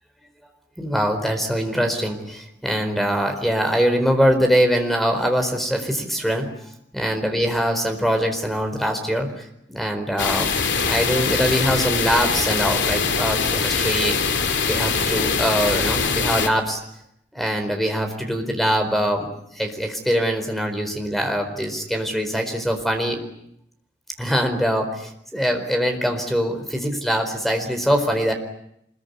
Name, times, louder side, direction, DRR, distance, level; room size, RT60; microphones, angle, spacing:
voice 1, 0.8-6.5 6.9-14.2 14.7-16.8 17.3-23.2 24.2-28.3, equal, ahead, 5 dB, 4.5 m, -23 dB
sound 1, 10.2-16.5, left 5 dB, 80° left, 2.8 m, -22 dB
25.5 x 22.5 x 9.7 m, 0.75 s
head